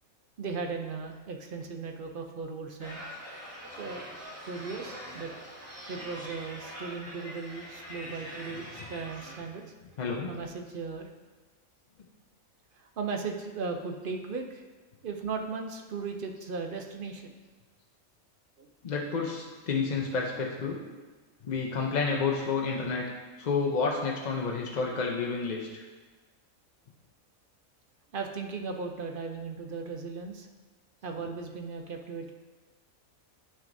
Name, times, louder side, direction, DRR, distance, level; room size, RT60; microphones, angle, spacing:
voice 1, 0.4-3.0 3.7-4.0 4.5-5.5 5.9-9.7 10.3-11.1 12.7-14.6 15.0-17.3 18.6-18.7 28.1-30.5 31.0-32.3, right 4 dB, 55° right, 3 dB, 0.6 m, -37 dB
sound 1, 2.8-9.4, equal, 10° right, 1.4 m, -43 dB
voice 2, 10.0-10.3 18.8-20.8 21.4-23.1 23.4-25.8, left 4 dB, 50° left, -1 dB, 0.5 m, -30 dB
9.6 x 6.0 x 2.6 m, 1.3 s
omnidirectional pair, 1.5 m